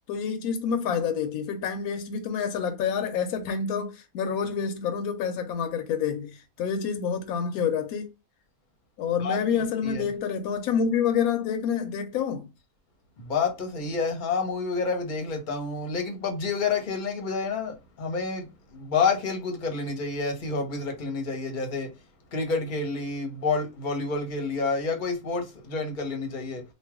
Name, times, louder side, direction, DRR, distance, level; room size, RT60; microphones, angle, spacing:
voice 1, 0.1-8.1 9.0-12.5, left 7 dB, 80° left, 1.1 m, -28 dB
voice 2, 9.2-10.0 13.2-21.9 22.3-26.6, left 4 dB, 40° left, 0.9 m, -29 dB
3.1 x 2.4 x 3.5 m
omnidirectional pair, 1.5 m